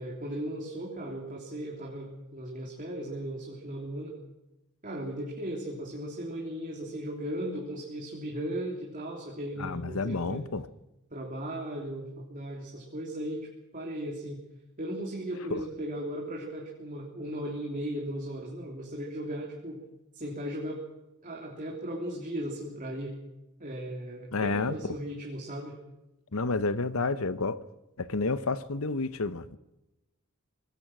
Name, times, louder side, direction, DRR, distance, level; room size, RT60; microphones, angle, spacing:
voice 1, 0.0-4.2 4.8-10.4 11.1-14.4 14.8-19.8 20.1-20.8 21.2-23.2 23.6-25.8, right 1 dB, 40° right, 3.3 m, -37 dB
voice 2, 9.6-10.7 15.5-15.6 24.3-24.8 26.3-27.6 28.0-29.6, left 3 dB, 70° left, 0.9 m, -30 dB
25.5 x 19.5 x 6.2 m
head